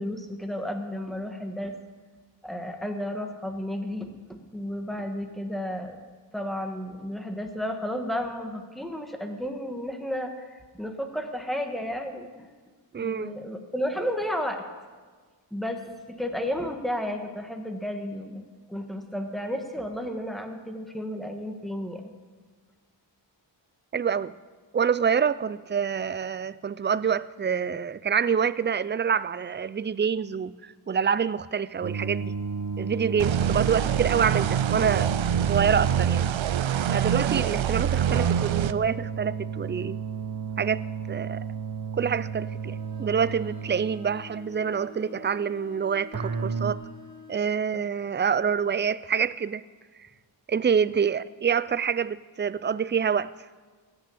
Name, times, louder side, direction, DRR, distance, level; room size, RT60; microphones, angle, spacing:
voice 1, 0.0-1.7 2.4-6.0 6.3-12.5 13.0-14.6 15.5-22.0 36.3-36.5 47.7-47.8, equal, ahead, 4 dB, 1.6 m, -33 dB
voice 2, 12.9-13.3 23.9-24.3 24.7-32.3 32.8-35.1 35.4-36.2 36.9-40.0 40.6-40.8 41.1-41.4 41.9-46.8 47.3-49.6 50.5-53.3, right 7 dB, 25° right, 17 dB, 0.4 m, -26 dB
sound 1, 31.8-36.5 38.1-44.4 46.1-46.7, right 5 dB, 40° right, 0.9 m, -33 dB
sound 2, 33.2-38.7, right 9 dB, 90° right, 0.5 m, -25 dB
Bowed string instrument, 42.5-47.5, left 4 dB, 45° left, 3.7 m, -48 dB
16.5 x 6.8 x 8.5 m, 1.5 s
wide cardioid pair, 70°, 45 cm